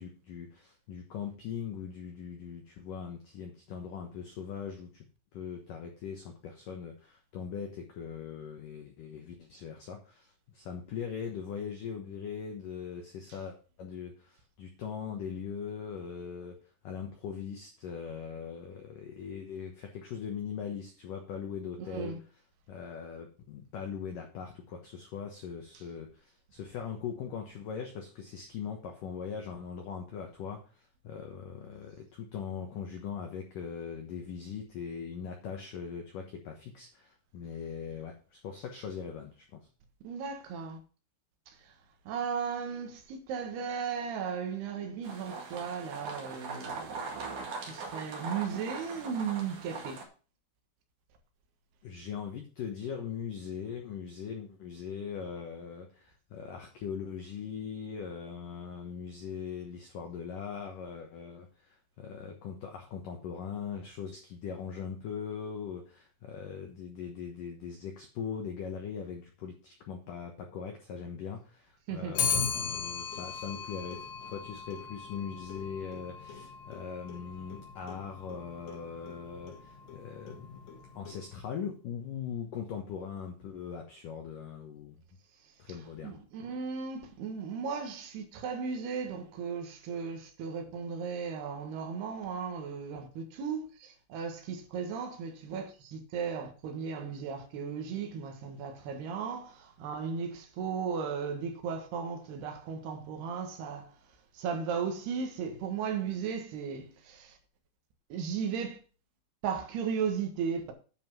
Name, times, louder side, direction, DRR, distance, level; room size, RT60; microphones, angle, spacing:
voice 1, 0.0-5.0 5.3-16.6 16.8-22.2 22.7-39.7 51.8-80.6 80.9-85.0 85.6-86.2, left 7 dB, 85° left, 1.8 m, -40 dB
voice 2, 21.8-22.2 40.0-40.8 41.5-41.7 42.1-50.0 71.9-72.1 86.0-103.9 104.3-107.4 108.1-108.8 109.4-110.7, right 6 dB, 65° right, 3.0 m, -36 dB
sound 1, 45.0-50.0, right 4 dB, 50° right, 2.5 m, -41 dB
Clock, 72.2-81.5, left 6 dB, 65° left, 3.9 m, -38 dB
10.0 x 5.6 x 6.0 m
omnidirectional pair, 5.9 m